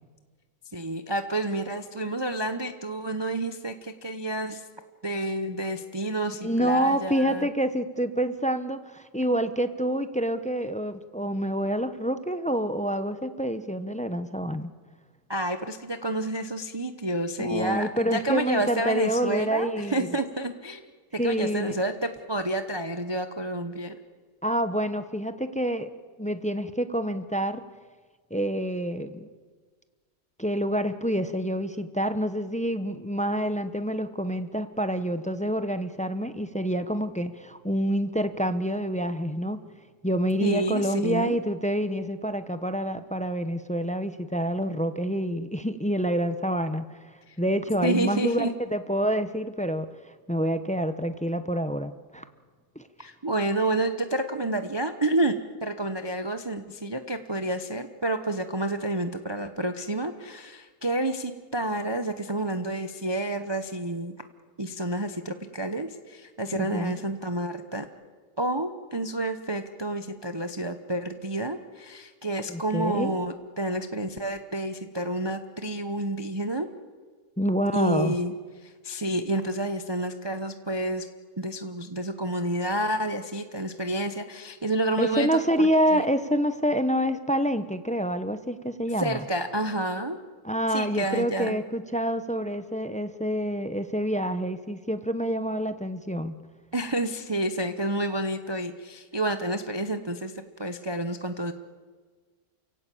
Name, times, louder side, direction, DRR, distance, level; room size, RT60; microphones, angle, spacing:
voice 1, 0.7-4.6 5.0-7.5 15.3-20.8 21.2-24.0 40.4-41.4 47.3-47.4 47.8-48.5 53.0-55.4 55.6-64.1 64.6-67.9 68.4-76.7 77.7-78.3 78.6-81.1 81.4-86.0 89.0-90.2 90.7-91.6 96.7-100.3 100.6-101.5, right 1 dB, 20° right, 8 dB, 0.8 m, -29 dB
voice 2, 6.4-14.7 17.4-20.1 21.2-21.8 24.4-25.9 26.2-27.6 28.3-29.3 30.4-39.6 40.0-46.9 47.4-49.9 50.3-52.2 52.8-52.9 66.6-66.9 72.5-73.1 77.4-78.1 85.0-89.2 90.4-96.3, equal, 10° left, 10 dB, 0.4 m, -27 dB
28.5 x 16.5 x 8.5 m, 1.5 s
omnidirectional pair, 1.8 m